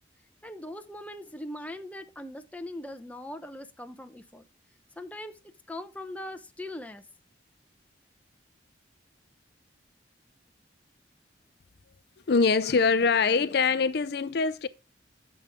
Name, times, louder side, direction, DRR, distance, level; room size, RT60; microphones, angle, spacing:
voice 1, 0.4-4.4 5.0-5.4 5.7-7.0, left 1 dB, 10° left, 0.8 m, -40 dB
voice 2, 12.3-14.7, left 4 dB, 60° left, 0.5 m, -23 dB
9.6 x 7.0 x 3.5 m
head